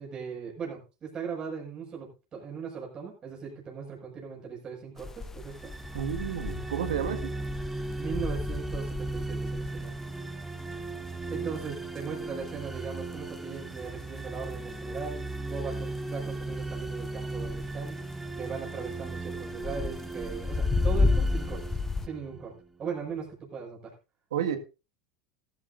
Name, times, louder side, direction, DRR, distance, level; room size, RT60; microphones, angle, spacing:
voice 1, 0.0-5.7 8.0-9.9 11.3-18.0 18.3-21.6 22.0-22.5 22.8-23.9, right 6 dB, 35° right, -2 dB, 6.2 m, -38 dB
sound 1, 5.0-22.1, left 3 dB, 15° left, 0.7 m, -33 dB
sound 2, 5.5-22.6, right 3 dB, 10° right, 0.9 m, -37 dB
voice 2, 5.9-7.3 24.3-24.6, right 9 dB, 80° right, 7 dB, 1.9 m, -31 dB
15.5 x 13.0 x 2.6 m, 0.30 s
hypercardioid pair, 90°, 2 cm